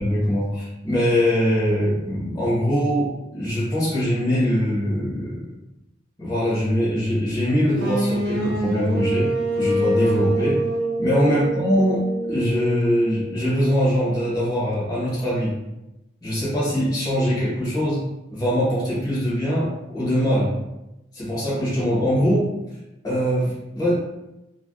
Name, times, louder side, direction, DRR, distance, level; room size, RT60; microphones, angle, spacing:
voice 1, 0.0-5.5 6.2-10.6 11.0-15.5 16.2-18.0 18.3-20.5 21.1-22.5 23.0-24.0, equal, 20° left, -9 dB, 1.2 m, -22 dB
sound 1, 7.8-13.7, right 1 dB, 60° right, 0.5 m, -25 dB
3.3 x 2.6 x 2.2 m, 0.94 s
head